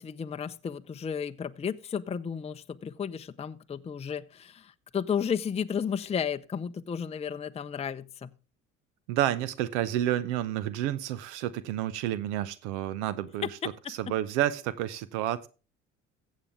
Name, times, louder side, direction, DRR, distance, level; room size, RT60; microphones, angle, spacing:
voice 1, 0.0-8.4 13.4-13.5, left 7 dB, 20° left, 0.5 m, -33 dB
voice 2, 9.1-13.5 13.9-15.5, right 12 dB, 85° right, 0.7 m, -30 dB
15.0 x 7.4 x 3.5 m
hypercardioid pair, 65°, 34 cm